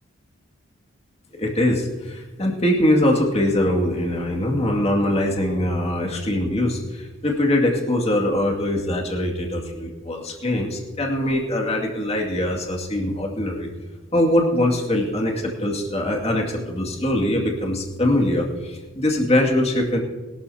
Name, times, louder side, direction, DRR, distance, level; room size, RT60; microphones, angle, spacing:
voice 1, 1.4-13.7 14.1-20.0, left 1 dB, 30° left, 0 dB, 2.2 m, -22 dB
21.5 x 12.5 x 2.8 m, 1.2 s
head